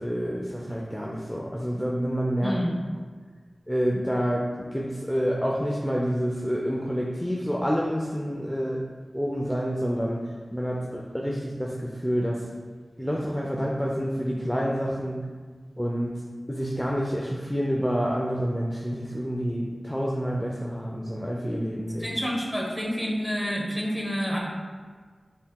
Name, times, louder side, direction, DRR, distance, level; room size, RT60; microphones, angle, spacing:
voice 1, 0.0-2.6 3.7-8.8 9.1-12.4 13.0-15.2 15.8-16.1 16.5-22.2, equal, 5° left, -3 dB, 0.5 m, -28 dB
voice 2, 2.4-2.7 22.0-24.4, equal, 15° right, -3 dB, 1.2 m, -28 dB
5.5 x 4.2 x 2.3 m, 1.5 s
cardioid pair, 45°, 0 cm